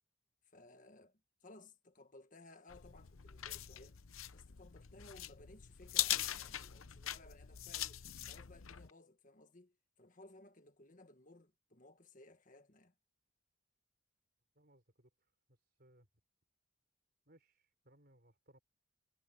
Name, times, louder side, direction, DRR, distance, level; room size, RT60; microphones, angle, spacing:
voice 1, 0.5-4.0 4.3-8.0 8.3-12.9, left 2 dB, 40° left, 1.6 m, -60 dB
sound 1, 2.7-8.9, left 13 dB, 75° left, 0.8 m, -41 dB
voice 2, 14.5-15.1 15.5-16.1 17.3-18.6, right 1 dB, 45° right, 4.5 m, -67 dB
head